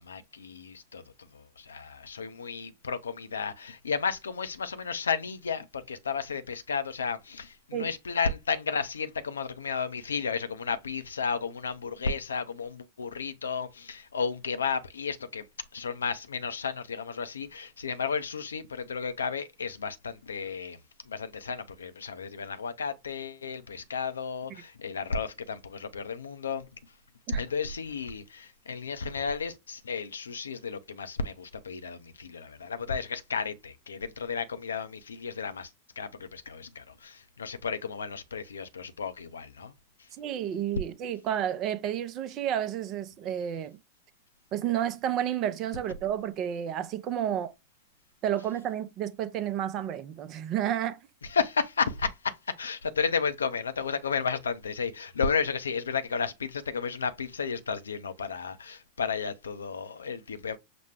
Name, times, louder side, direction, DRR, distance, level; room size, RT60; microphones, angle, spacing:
voice 1, 0.0-15.5 15.7-20.8 21.0-26.7 27.3-35.7 36.0-39.7 40.0-40.1 51.2-60.6, left 5 dB, 70° left, 0.5 m, -33 dB
voice 2, 40.2-43.8 44.5-47.5 48.2-51.0, right 10 dB, 35° right, 0.5 m, -31 dB
5.9 x 2.2 x 3.2 m
figure-of-eight pair, 90°, 0 cm